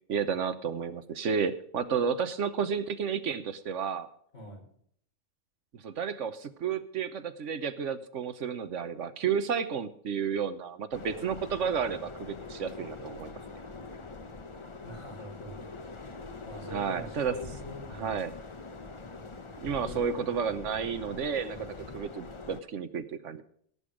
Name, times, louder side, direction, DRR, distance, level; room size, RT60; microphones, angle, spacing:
voice 1, 0.1-4.1 5.7-13.4 16.7-17.3 18.0-18.3 19.6-23.4, right 6 dB, 70° right, 12 dB, 1.2 m, -32 dB
voice 2, 4.3-4.6 14.8-15.7 16.4-18.2 19.8-20.2 20.6-21.1 21.4-21.7, left 1 dB, 65° left, -1 dB, 5.4 m, -44 dB
sound 1, 10.9-22.6, left 3 dB, 25° left, 0.8 m, -44 dB
17.5 x 8.2 x 5.0 m, 0.64 s
omnidirectional pair, 1.3 m